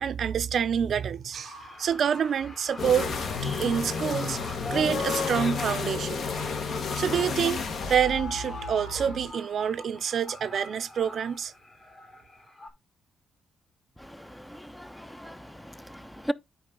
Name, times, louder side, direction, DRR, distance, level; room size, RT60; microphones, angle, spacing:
voice 1, 0.0-3.1 3.6-4.4 4.7-6.2 7.0-7.6 7.9-11.5, right 8 dB, 60° right, 0.5 m, -27 dB
sound 1, 1.3-12.7, left 1 dB, 35° left, 2.7 m, -45 dB
sound 2, 2.8-8.0, left 5 dB, 55° left, 1.4 m, -31 dB
sound 3, 7.2-9.3, left 3 dB, 75° left, 2.1 m, -37 dB
voice 2, 14.3-16.3, equal, 5° left, 0.5 m, -37 dB
9.4 x 4.1 x 3.6 m
cardioid pair, 90°, 0 cm